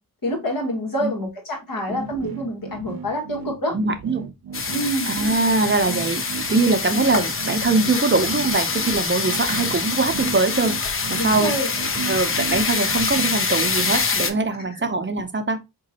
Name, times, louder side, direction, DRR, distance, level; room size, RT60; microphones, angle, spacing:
voice 1, 0.2-3.8 4.7-5.1 11.2-11.7, equal, 70° left, 1.7 m, -26 dB
sound 1, 1.9-14.5, right 8 dB, 75° right, 0.6 m, -34 dB
voice 2, 3.7-4.2 5.1-6.2 6.5-10.7 11.1-11.5 12.1-15.6, right 3 dB, 35° right, 0.6 m, -22 dB
sound 2, 4.5-14.3, left 4 dB, 40° left, 0.6 m, -25 dB
3.8 x 3.0 x 2.8 m
cardioid pair, 60°, 35 cm